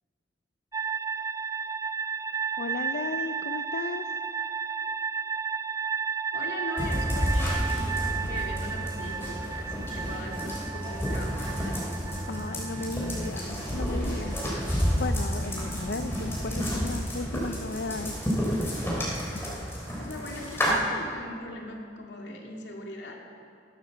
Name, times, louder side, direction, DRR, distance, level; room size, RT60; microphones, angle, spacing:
sound 1, 0.7-16.5, right 6 dB, 20° right, 0.3 m, -34 dB
voice 1, 2.6-4.1 12.3-14.6 14.9-18.2, left 3 dB, 65° left, 7 dB, 0.5 m, -35 dB
voice 2, 6.3-11.8 20.0-23.2, left 1 dB, 90° left, 0 dB, 2.5 m, -40 dB
sound 2, 6.8-20.7, equal, 15° left, 3.8 m, -30 dB
16.0 x 12.5 x 6.8 m, 2.4 s
head